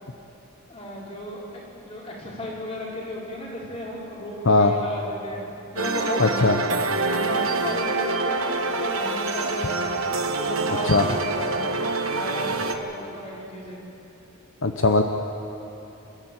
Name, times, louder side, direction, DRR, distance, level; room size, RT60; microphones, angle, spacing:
voice 1, 0.7-5.4 5.7-6.4 7.0-10.0 10.4-13.8, equal, 30° left, -4 dB, 4.9 m, -34 dB
sound 1, 5.8-12.7, right 3 dB, 75° right, 1.3 m, -26 dB
voice 2, 6.2-6.6 10.9-11.0 14.6-15.0, left 3 dB, 60° left, 5 dB, 0.9 m, -18 dB
28.0 x 13.0 x 8.9 m, 3.0 s
head